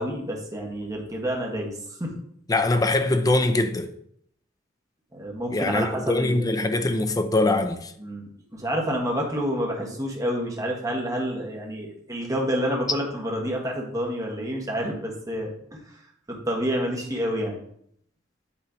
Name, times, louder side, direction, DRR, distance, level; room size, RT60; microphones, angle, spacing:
voice 1, 0.0-2.1 5.1-6.5 8.0-15.8 16.3-17.6, equal, 20° right, 1.5 m, -29 dB
voice 2, 2.5-3.9 5.5-7.9, left 2 dB, 20° left, 0.5 m, -23 dB
8.4 x 3.2 x 5.0 m
head